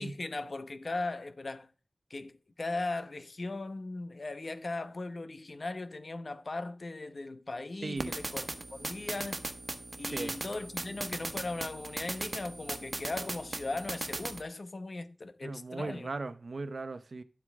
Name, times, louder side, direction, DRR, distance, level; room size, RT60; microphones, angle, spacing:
voice 1, 0.0-1.7 2.1-9.4 10.0-16.1, left 2 dB, 65° left, 1.0 m, -38 dB
voice 2, 7.8-8.2 10.1-10.3 15.4-17.2, right 3 dB, 75° right, 0.8 m, -38 dB
sound 1, 8.0-14.4, right 2 dB, 55° right, 1.2 m, -38 dB
11.5 x 7.8 x 3.6 m
wide cardioid pair, 45°, 0 cm